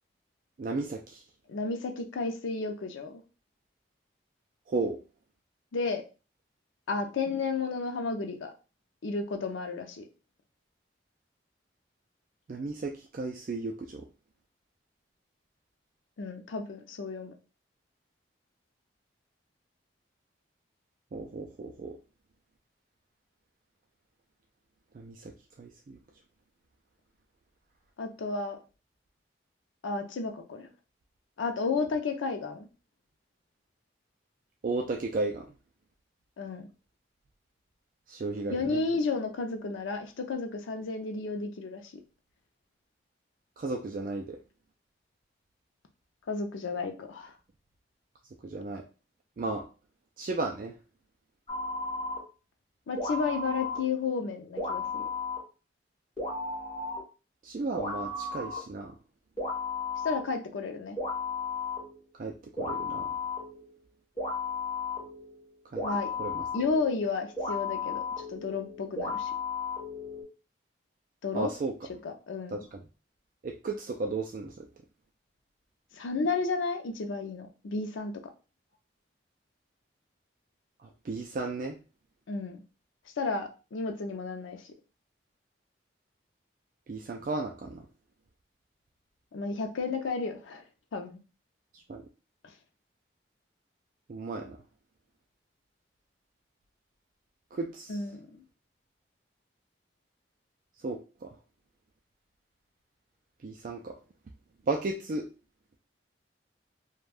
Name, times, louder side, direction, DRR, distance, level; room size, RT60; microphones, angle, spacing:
voice 1, 0.6-1.2 4.7-5.0 12.5-14.1 21.1-22.0 24.9-25.3 25.6-26.0 34.6-35.5 38.1-38.8 43.6-44.4 48.4-48.8 49.4-49.6 50.2-50.7 57.4-58.9 62.2-63.1 65.7-65.8 66.2-66.4 71.3-71.7 72.5-72.8 73.4-74.7 81.0-81.8 86.9-87.8 91.9-92.0 94.1-94.6 97.5-98.0 100.8-101.3 103.4-104.0 104.7-105.3, right 3 dB, 45° right, 2 dB, 0.3 m, -34 dB
voice 2, 1.5-3.2 5.7-6.0 6.9-8.5 9.0-10.0 16.2-17.3 28.0-28.6 29.8-30.7 31.4-32.7 36.4-36.7 38.5-41.8 46.3-47.3 52.9-55.1 60.0-61.0 65.8-66.1 66.5-68.0 68.3-69.3 71.2-71.5 72.0-72.6 75.9-78.1 82.3-82.6 83.2-84.6 89.3-90.6 90.9-91.2 97.9-98.4, left 4 dB, 85° left, 4 dB, 0.5 m, -32 dB
sound 1, 51.5-52.2 53.0-53.8 54.6-55.4 56.2-57.0 57.8-58.6 59.4-60.3 61.0-62.1 62.6-63.8 64.2-70.2, left 4 dB, 25° left, 1.0 m, -34 dB
2.5 x 2.2 x 3.3 m, 0.32 s
head